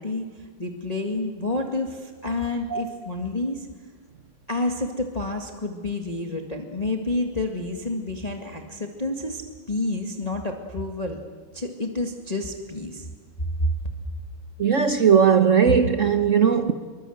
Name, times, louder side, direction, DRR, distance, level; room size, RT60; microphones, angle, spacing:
voice 1, 0.0-3.7 4.5-9.4 9.7-11.2 11.5-13.1 13.6-13.7, left 2 dB, 20° left, 1.8 m, -29 dB
voice 2, 14.6-16.7, right 7 dB, 45° right, 1.2 m, -18 dB
26.5 x 23.5 x 8.0 m
omnidirectional pair, 2.1 m